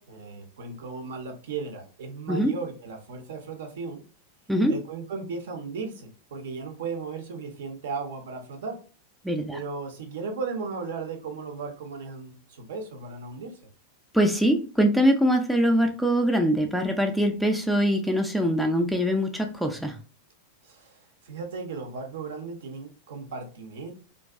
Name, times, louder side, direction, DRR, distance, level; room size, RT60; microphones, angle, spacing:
voice 1, 0.0-4.0 4.7-8.8 9.5-13.6 20.6-21.0 21.2-23.9, right 4 dB, 60° right, 5 dB, 0.5 m, -36 dB
voice 2, 9.2-9.6 14.1-20.0, equal, ahead, 4 dB, 0.3 m, -23 dB
2.4 x 2.2 x 2.3 m, 0.36 s
figure-of-eight pair, 90°, 0 cm